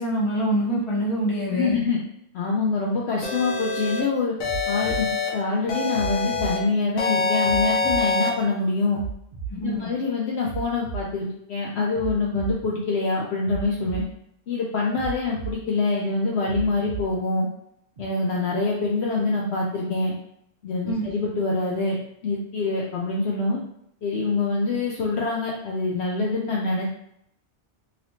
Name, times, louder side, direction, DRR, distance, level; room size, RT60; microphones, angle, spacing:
voice 1, 0.0-1.8 9.5-9.9 20.9-21.0, equal, 30° left, -3 dB, 0.7 m, -25 dB
voice 2, 1.5-2.0 2.3-4.3 4.7-9.0 9.5-14.0 14.5-17.5 18.0-20.1 20.6-22.0 22.2-23.6 24.0-26.9, left 3 dB, 65° left, -2 dB, 0.7 m, -25 dB
sound 1, 3.2-4.0 4.4-5.3 5.7-6.6 7.0-8.3, left 4 dB, 85° left, 1.2 m, -25 dB
sound 2, 4.4-5.0 5.9-6.5 7.4-8.0 8.9-9.5 10.4-11.0 11.9-12.5 13.4-14.0 15.0-15.5 16.5-17.1 18.0-18.1, right 7 dB, 50° right, 0.6 m, -33 dB
3.2 x 2.9 x 2.6 m, 0.76 s
omnidirectional pair, 1.3 m